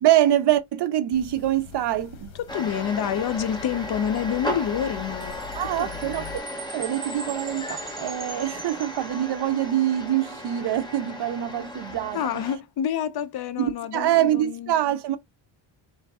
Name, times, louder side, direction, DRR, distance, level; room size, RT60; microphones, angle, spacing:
voice 1, 0.0-2.3 5.5-6.2 6.7-12.4 13.6-15.2, right 12 dB, 55° right, 0.6 m, -24 dB
sound 1, 1.1-6.4, left 9 dB, 80° left, 1.0 m, -43 dB
voice 2, 2.4-6.3 12.1-14.7, left 9 dB, 50° left, 0.6 m, -28 dB
sound 2, 2.5-12.6, equal, 10° left, 0.9 m, -36 dB
Chime, 5.2-9.7, right 4 dB, 25° right, 1.2 m, -41 dB
3.9 x 2.5 x 3.4 m
cardioid pair, 130°, 49 cm